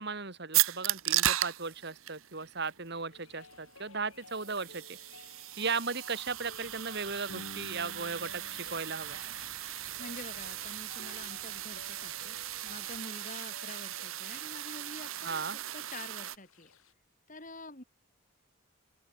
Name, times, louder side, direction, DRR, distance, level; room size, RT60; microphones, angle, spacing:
voice 1, 0.0-5.0 5.6-9.2 15.2-15.6, right 4 dB, 55° right, 2.7 m, -36 dB
sound 1, 0.5-16.4, right 14 dB, 80° right, 0.8 m, -36 dB
sound 2, 3.1-16.9, left 3 dB, 85° left, 2.7 m, -54 dB
sound 3, 6.2-13.0, right 2 dB, 15° right, 5.5 m, -60 dB
voice 2, 10.0-12.4 12.6-15.4 15.7-16.7 17.3-17.8, left 2 dB, 40° left, 6.4 m, -47 dB
open air
head